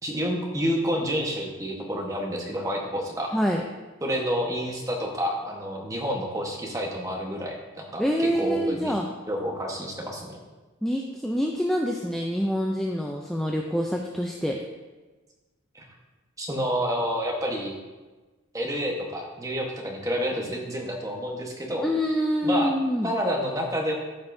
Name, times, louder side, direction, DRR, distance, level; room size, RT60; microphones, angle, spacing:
voice 1, 0.0-3.3 4.0-8.9 9.3-10.4 15.7-15.8 16.4-17.7 18.5-21.8 22.4-22.7 23.0-23.9, equal, 15° right, -1 dB, 1.2 m, -29 dB
voice 2, 3.3-3.6 8.0-9.1 10.8-14.6 21.8-23.2, equal, ahead, 0 dB, 0.4 m, -26 dB
13.5 x 5.4 x 2.7 m, 1.2 s
head